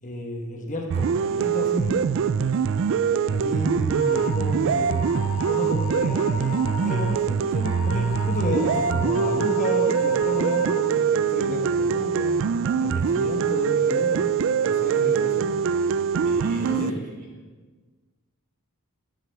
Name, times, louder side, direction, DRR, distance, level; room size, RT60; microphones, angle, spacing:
voice 1, 0.0-2.1 3.3-5.1 5.4-12.4 12.8-14.2 14.7-15.5 16.7-16.9, left 1 dB, 35° left, 2 dB, 1.1 m, -31 dB
sound 1, 0.9-16.9, right 6 dB, 60° right, 0.3 m, -23 dB
sound 2, 3.9-4.4 4.9-7.1 7.6-10.8, left 8 dB, 65° left, 1.9 m, -36 dB
voice 2, 16.2-17.3, right 1 dB, 35° right, -2 dB, 3.1 m, -37 dB
15.0 x 9.2 x 3.4 m, 1.4 s
head